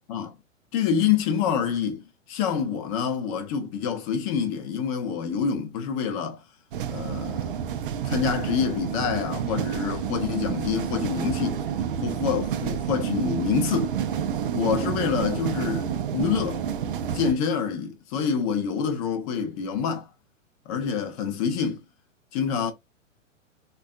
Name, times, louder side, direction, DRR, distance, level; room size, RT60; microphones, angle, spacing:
voice 1, 0.7-2.0 2.3-6.4 6.9-7.4 8.0-11.6 12.0-13.9 14.5-16.6 17.1-20.1 20.7-21.8 22.3-22.7, left 7 dB, 30° left, 0.6 m, -26 dB
sound 1, 6.7-17.3, right 8 dB, 45° right, 0.4 m, -29 dB
3.3 x 2.3 x 2.4 m
figure-of-eight pair, 115°, 39 cm